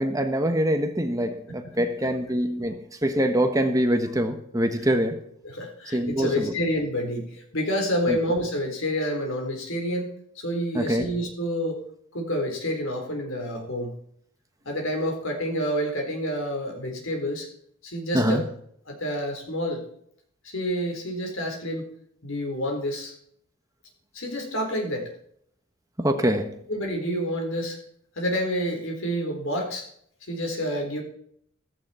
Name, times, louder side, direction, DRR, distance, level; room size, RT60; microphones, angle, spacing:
voice 1, 0.0-5.2 5.9-6.5 8.1-8.2 10.7-11.1 18.1-18.4 26.0-26.5, equal, 15° right, 6 dB, 1.2 m, -24 dB
voice 2, 5.4-10.1 10.4-11.8 12.1-14.0 14.7-17.5 17.8-18.4 18.9-19.8 20.4-21.9 22.2-23.1 24.1-25.1 26.7-27.8 28.2-29.8 30.3-31.0, equal, 75° left, 3 dB, 4.2 m, -28 dB
15.0 x 14.5 x 4.4 m, 0.67 s
head